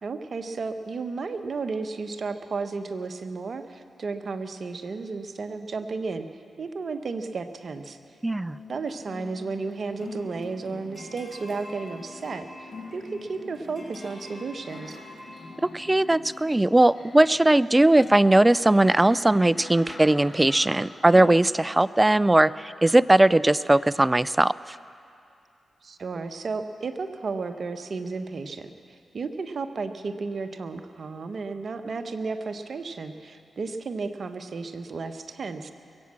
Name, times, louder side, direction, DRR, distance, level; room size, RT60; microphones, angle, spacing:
voice 1, 0.0-6.3 6.6-8.0 8.7-15.0 25.8-35.7, right 4 dB, 60° right, 8 dB, 0.9 m, -33 dB
voice 2, 8.2-8.6 15.7-24.8, right 1 dB, 20° right, 18 dB, 0.4 m, -19 dB
sound 1, 8.5-21.4, left 2 dB, 45° left, 3.5 m, -44 dB
22.5 x 8.6 x 7.5 m, 2.5 s
cardioid pair, 55°, 0 cm